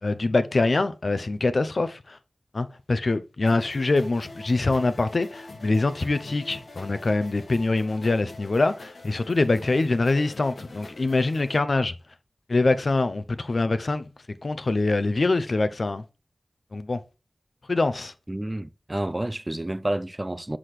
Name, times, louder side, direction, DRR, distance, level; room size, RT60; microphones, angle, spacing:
voice 1, 0.0-2.2 2.5-11.9 12.5-14.1 14.4-16.0 16.7-17.0 17.7-18.1, left 3 dB, 65° left, 0.6 m, -24 dB
sound 1, 3.5-11.6, left 2 dB, 85° left, 1.4 m, -44 dB
voice 2, 18.3-20.6, right 1 dB, 25° right, 0.4 m, -29 dB
6.2 x 5.9 x 3.2 m
wide cardioid pair, 60°, 0 cm